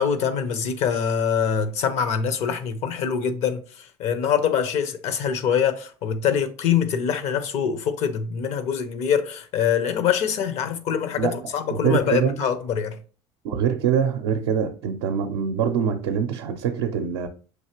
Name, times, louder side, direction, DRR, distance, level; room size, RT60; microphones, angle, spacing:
voice 1, 0.0-13.0, left 7 dB, 60° left, 0.7 m, -24 dB
voice 2, 11.7-12.4 13.4-17.3, right 8 dB, 80° right, 0.5 m, -24 dB
6.1 x 2.8 x 2.9 m
hypercardioid pair, 80°, 13 cm